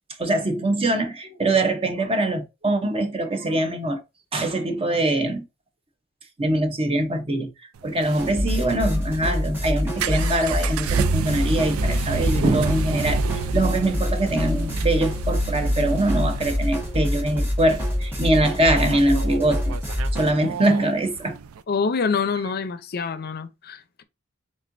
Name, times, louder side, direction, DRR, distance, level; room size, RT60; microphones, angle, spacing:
voice 1, 0.2-4.0 4.3-5.4 6.4-7.5 7.8-13.2 13.5-19.7 20.1-21.4, right 1 dB, 30° right, 0.7 m, -23 dB
sound 1, 7.8-21.6, right 6 dB, 80° right, 0.4 m, -31 dB
sound 2, 8.2-20.3, left 1 dB, 10° right, 1.1 m, -26 dB
voice 2, 21.7-24.0, left 5 dB, 50° left, 0.5 m, -26 dB
4.2 x 3.7 x 2.5 m
head